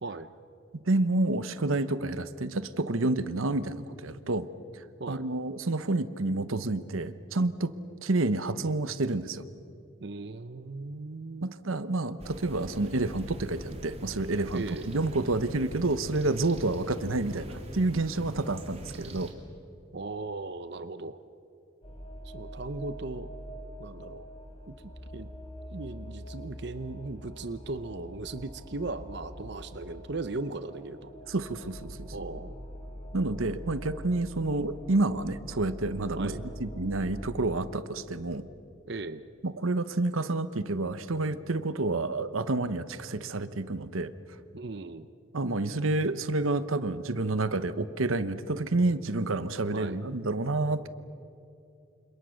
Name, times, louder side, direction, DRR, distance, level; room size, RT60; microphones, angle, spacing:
voice 1, 0.8-4.5 4.7-7.7 8.0-9.4 11.4-19.3 31.3-32.3 33.1-38.5 39.4-44.1 45.3-50.9, right 2 dB, 90° right, 13 dB, 1.0 m, -29 dB
voice 2, 10.0-11.5 14.5-14.9 19.9-21.2 22.2-23.3 23.8-24.3 24.7-24.8 25.1-25.3 25.7-31.1 32.1-32.6 36.2-36.4 38.9-39.2 44.5-45.1 49.7-50.0, right 3 dB, 55° right, 12 dB, 0.8 m, -37 dB
sound 1, 12.2-19.3, right 1 dB, 30° right, 2.8 m, -42 dB
sound 2, 21.8-37.8, equal, 25° left, 3.8 m, -44 dB
29.5 x 26.5 x 6.5 m, 2.6 s
head